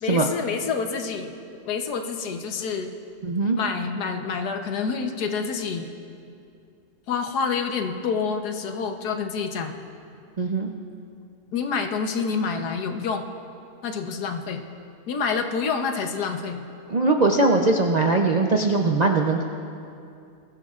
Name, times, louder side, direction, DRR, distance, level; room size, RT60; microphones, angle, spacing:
voice 1, 0.0-1.3 1.6-2.9 3.6-5.9 7.1-9.7 11.5-13.3 13.8-14.6 15.1-16.6, left 5 dB, 80° left, 5 dB, 1.5 m, -27 dB
voice 2, 3.2-3.6 10.4-10.7 16.9-19.4, right 3 dB, 55° right, 1 dB, 0.4 m, -20 dB
21.5 x 15.0 x 2.4 m, 2.5 s
omnidirectional pair, 1.7 m